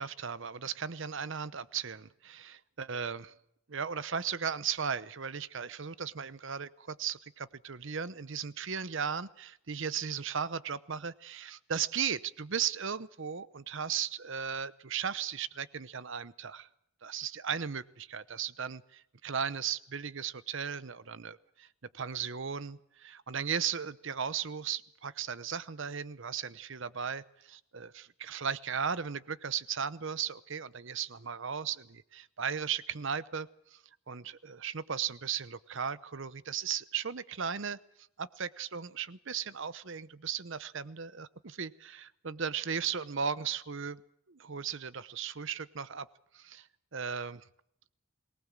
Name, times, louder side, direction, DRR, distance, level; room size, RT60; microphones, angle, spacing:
voice 1, 0.0-3.3 3.7-16.7 17.0-18.8 19.2-21.7 21.9-33.8 34.1-37.8 38.2-44.0 44.3-46.1 46.3-46.7 46.9-47.4, right 7 dB, 55° right, 17 dB, 0.8 m, -36 dB
22.5 x 19.0 x 7.5 m, 0.75 s
head